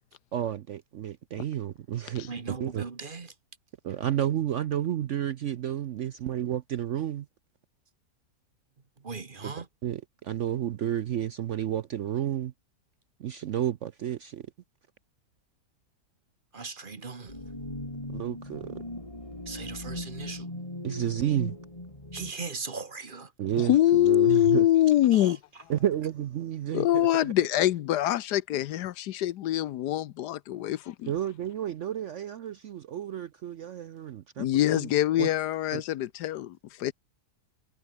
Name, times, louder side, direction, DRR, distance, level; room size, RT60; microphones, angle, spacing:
voice 1, 0.3-2.8 3.8-7.3 9.4-9.5 9.8-12.5 13.2-14.5 18.1-18.8 20.8-21.6 23.4-24.7 25.7-27.3 31.1-34.9 35.2-35.3 35.7-35.8, right 11 dB, 60° right, 0.8 m, -31 dB
voice 2, 2.3-3.3 9.0-9.7 16.5-17.4 19.5-20.7 22.1-23.3 25.1-25.6, right 4 dB, 35° right, 1.4 m, -39 dB
sound 1, 17.3-22.3, left 1 dB, 20° left, 4.1 m, -39 dB
voice 3, 23.6-25.4 26.7-31.1 34.4-36.9, left 13 dB, 80° left, 1.3 m, -24 dB
omnidirectional pair, 1.7 m